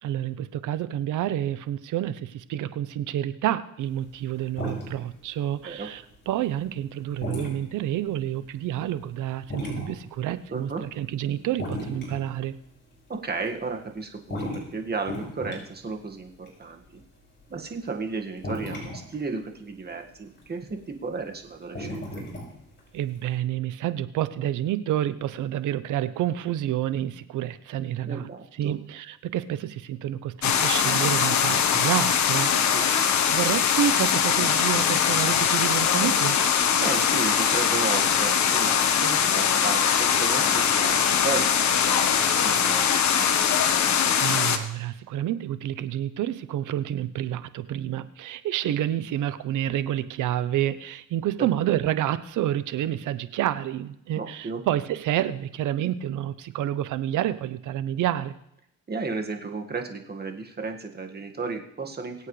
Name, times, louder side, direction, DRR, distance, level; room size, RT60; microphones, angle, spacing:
voice 1, 0.0-12.5 22.9-28.3 28.6-33.0 33.2-36.4 44.2-58.4, right 12 dB, 80° right, 13 dB, 0.8 m, -29 dB
sound 1, 3.8-5.3 5.5-10.1 10.4-11.2 11.5-13.0 13.4-14.0 14.2-18.0 18.4-19.6 19.9-20.8 21.1-23.3, left 1 dB, 40° left, 6.3 m, -36 dB
voice 2, 10.5-10.8 13.1-17.0 17.5-22.2 28.0-28.7 32.5-32.8 36.8-43.4 51.4-51.5 54.1-54.6 58.9-62.3, right 4 dB, 30° right, 3 dB, 1.8 m, -34 dB
sound 2, 30.4-44.6, left 8 dB, 70° left, 1.2 m, -22 dB
23.0 x 8.3 x 3.3 m, 0.78 s
cardioid pair, 90°, 30 cm